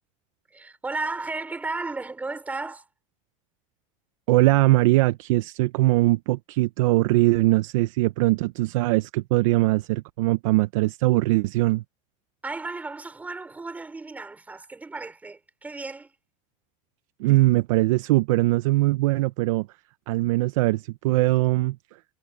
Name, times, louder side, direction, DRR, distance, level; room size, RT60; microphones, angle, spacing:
voice 1, 0.5-2.8 12.4-16.1, right 3 dB, 10° right, 5.1 m, -34 dB
voice 2, 4.3-11.8 17.2-19.7 20.1-21.8, right 18 dB, 75° right, 0.8 m, -21 dB
supercardioid pair, 160°, 17 cm